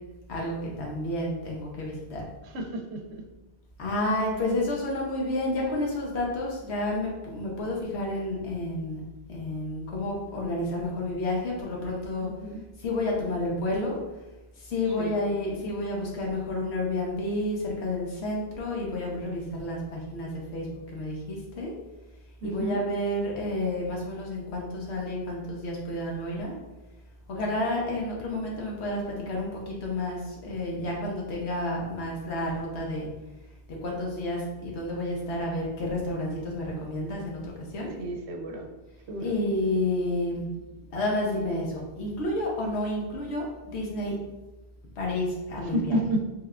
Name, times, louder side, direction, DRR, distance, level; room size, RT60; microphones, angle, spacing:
voice 1, 0.3-2.2 3.8-9.0 9.3-12.5 12.8-14.0 14.6-21.7 22.4-26.5 27.3-33.1 33.8-37.9 39.2-40.5 40.9-44.2 45.0-46.0, left 1 dB, 80° left, -2 dB, 1.1 m, -30 dB
voice 2, 2.4-3.2 12.2-12.6 15.0-15.2 22.4-22.8 38.0-38.7 39.1-39.3 45.7-46.2, right 1 dB, 75° right, 2 dB, 0.8 m, -31 dB
3.3 x 3.2 x 2.4 m, 1.1 s
omnidirectional pair, 1.1 m